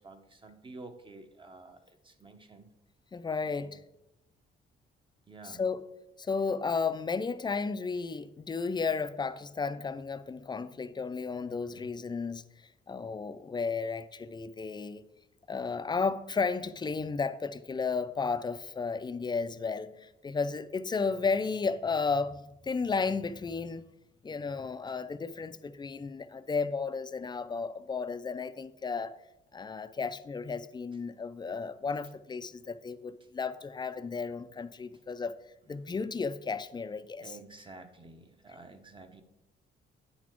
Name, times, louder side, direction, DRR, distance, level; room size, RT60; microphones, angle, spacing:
voice 1, 0.0-2.7 3.4-3.8 5.3-5.6 11.6-11.9 25.4-25.6 37.2-39.2, right 3 dB, 25° right, 0.9 m, -50 dB
voice 2, 3.1-3.8 5.5-5.8 6.2-12.4 12.9-15.0 15.5-23.8 24.2-29.1 29.5-35.4 35.7-37.3, left 4 dB, 20° left, 0.4 m, -33 dB
9.2 x 4.1 x 4.5 m
cardioid pair, 90°, 20 cm